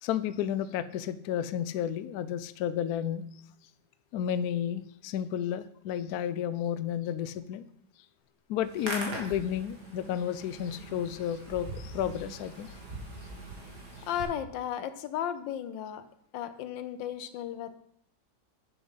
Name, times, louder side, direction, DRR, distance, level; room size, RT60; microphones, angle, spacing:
voice 1, 0.0-3.2 4.1-7.7 8.5-12.7, left 10 dB, 70° left, 14 dB, 0.9 m, -32 dB
Hands, 8.6-14.2, right 2 dB, 60° right, 2.6 m, -41 dB
voice 2, 14.1-16.0 16.3-17.7, left 10 dB, 85° left, 12 dB, 1.4 m, -34 dB
7.8 x 7.0 x 5.5 m, 0.70 s
omnidirectional pair, 2.0 m